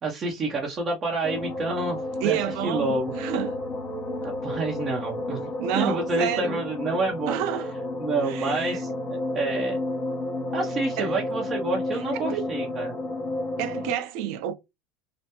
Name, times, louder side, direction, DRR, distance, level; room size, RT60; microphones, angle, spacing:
voice 1, 0.0-2.4 2.6-3.1 4.2-7.4 8.0-9.8 10.5-13.0, right 2 dB, 25° right, 0.8 m, -28 dB
sound 1, 1.2-13.9, left 2 dB, 25° left, 0.9 m, -31 dB
voice 2, 2.2-3.6 5.6-6.6 7.3-7.7 8.2-8.8 11.0-11.1 12.1-12.5 13.6-14.5, right 11 dB, 65° right, 0.5 m, -29 dB
3.3 x 2.1 x 2.9 m
supercardioid pair, 140°, 0 cm